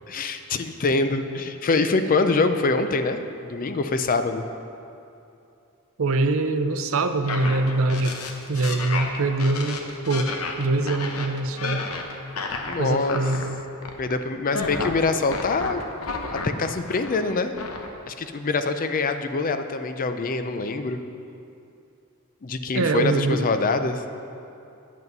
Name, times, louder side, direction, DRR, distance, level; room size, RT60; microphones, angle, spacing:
voice 1, 0.1-4.5 12.6-13.2 14.0-15.8 16.3-17.5 18.1-21.0 22.4-24.0, left 3 dB, 40° left, 9 dB, 0.5 m, -24 dB
voice 2, 6.0-8.1 8.5-9.8 10.1-10.3 10.6-11.9 12.8-13.6 22.7-23.4, right 2 dB, 65° right, 9 dB, 0.6 m, -23 dB
sound 1, 7.3-13.4 13.8-14.1 14.4-17.3 17.6-17.9, left 3 dB, 75° left, 0.9 m, -32 dB
9.3 x 8.3 x 5.4 m, 2.7 s
head